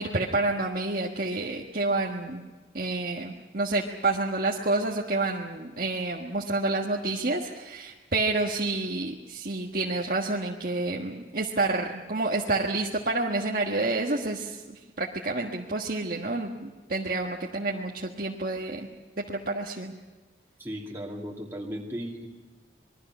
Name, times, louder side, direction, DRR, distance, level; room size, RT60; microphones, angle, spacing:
voice 1, 0.0-2.5 2.7-18.9 19.2-19.9, right 2 dB, 50° right, -1 dB, 1.6 m, -29 dB
voice 2, 20.6-22.3, equal, 15° right, -3 dB, 2.6 m, -36 dB
27.0 x 22.0 x 6.2 m, 1.3 s
head